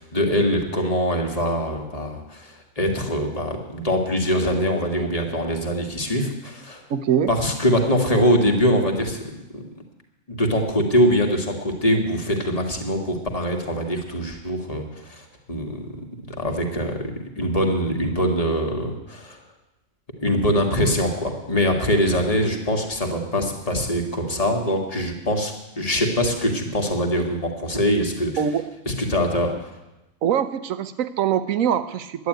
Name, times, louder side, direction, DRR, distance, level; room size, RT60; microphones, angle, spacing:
voice 1, 0.0-6.8 7.3-9.2 9.5-9.6 10.3-19.4 20.2-28.3 28.9-29.5, equal, 25° left, 2 dB, 1.9 m, -23 dB
voice 2, 6.9-7.3 28.4-28.6 30.2-32.3, right 9 dB, 75° right, 11 dB, 1.2 m, -23 dB
11.0 x 9.5 x 9.1 m, 0.95 s
omnidirectional pair, 1.5 m